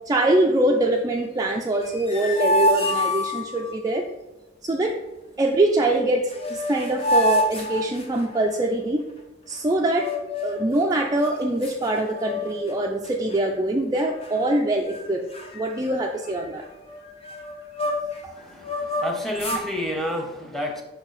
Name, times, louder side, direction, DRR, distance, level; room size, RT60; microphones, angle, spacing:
voice 1, 0.1-4.0 4.6-5.0 5.4-9.0 9.5-10.1 10.4-15.2 15.5-16.7 18.2-18.3, right 1 dB, 20° right, 0 dB, 0.4 m, -23 dB
sound 1, 1.7-3.8 5.9-6.0 6.3-8.5 9.9-10.7 11.2-11.3 11.6-12.7 13.0-13.4 13.9-14.6 14.9-15.0 15.3-18.2 18.6-19.7, left 1 dB, 35° left, 0.9 m, -27 dB
voice 2, 18.3-20.8, equal, ahead, 1 dB, 0.9 m, -30 dB
5.6 x 4.4 x 4.2 m, 1.1 s
head